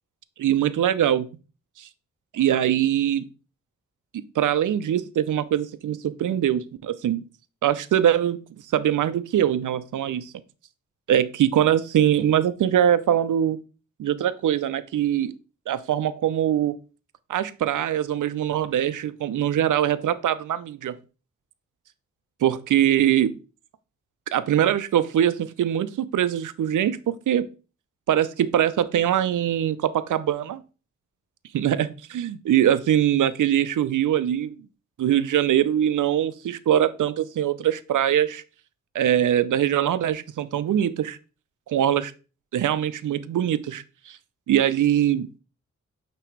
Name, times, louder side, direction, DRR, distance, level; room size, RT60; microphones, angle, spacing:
voice 1, 0.4-1.3 1.8-1.9 2.3-3.2 4.1-7.2 7.6-8.4 8.7-10.3 11.1-13.6 14.0-15.3 15.7-16.7 17.3-20.9 22.4-23.3 24.3-27.5 28.1-30.6 31.5-34.5 35.0-38.4 38.9-41.2 41.7-42.1 42.5-44.2 44.5-45.4, right 10 dB, 80° right, 13 dB, 0.6 m, -22 dB
9.1 x 3.1 x 4.6 m, 0.34 s
cardioid pair, 60°, 30 cm